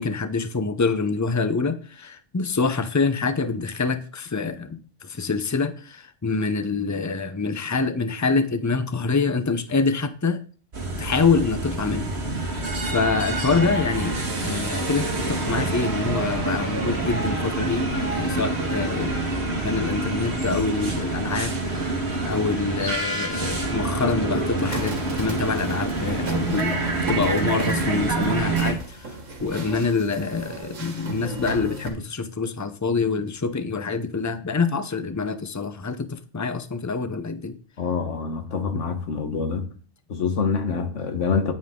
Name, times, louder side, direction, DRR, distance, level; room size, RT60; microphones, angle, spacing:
voice 1, 0.0-10.4 11.0-19.2 19.5-26.8 27.1-29.1 29.4-37.6, left 4 dB, 20° left, 0.5 m, -26 dB
sound 1, 10.7-28.7, right 2 dB, 55° right, 2.3 m, -27 dB
sound 2, 24.6-31.9, right 2 dB, 80° right, 2.2 m, -36 dB
voice 2, 37.8-39.7 40.1-41.5, left 5 dB, 70° left, 1.6 m, -26 dB
9.6 x 9.1 x 3.8 m
omnidirectional pair, 1.3 m